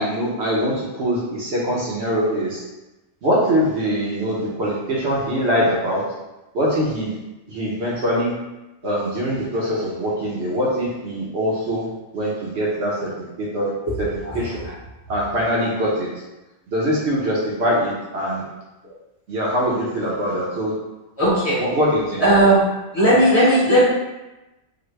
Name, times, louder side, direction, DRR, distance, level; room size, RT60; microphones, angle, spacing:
voice 1, 0.0-2.6 3.2-6.0 6.5-7.1 7.5-8.3 8.8-11.9 12.1-13.1 13.4-13.7 14.0-14.1 14.3-14.7 15.1-16.1 16.7-18.4 19.3-20.7 21.6-22.2, equal, 60° right, -5 dB, 1.0 m, -23 dB
voice 2, 21.2-21.6 22.2-22.6 22.9-23.8, right 1 dB, 30° left, -8 dB, 0.9 m, -16 dB
4.0 x 2.1 x 3.1 m, 1.0 s
omnidirectional pair, 1.4 m